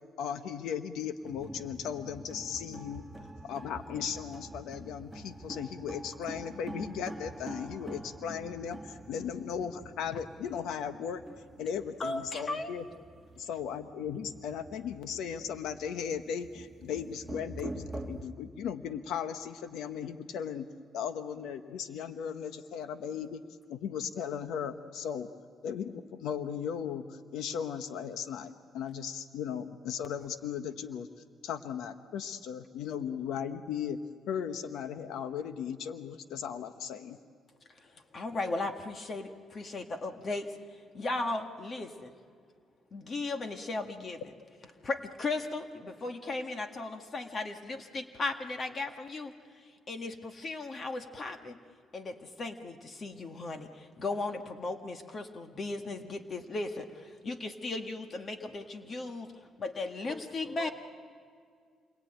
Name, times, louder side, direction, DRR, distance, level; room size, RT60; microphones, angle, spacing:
voice 1, 0.2-3.0 3.4-11.2 11.6-12.8 13.3-20.7 20.9-23.4 23.7-25.3 25.6-31.1 31.4-34.0 34.3-37.2, left 8 dB, 85° left, 9 dB, 1.0 m, -37 dB
sound 1, 1.2-18.2, right 1 dB, 5° right, 2.2 m, -46 dB
voice 2, 12.0-12.7 37.7-42.1 42.9-44.2 44.8-51.6 51.9-60.7, left 3 dB, 45° left, 5 dB, 1.8 m, -37 dB
voice 3, 60.1-60.7, left 3 dB, 15° left, 5 dB, 4.4 m, -46 dB
27.5 x 22.5 x 9.1 m, 2.1 s
cardioid pair, 90°, 0 cm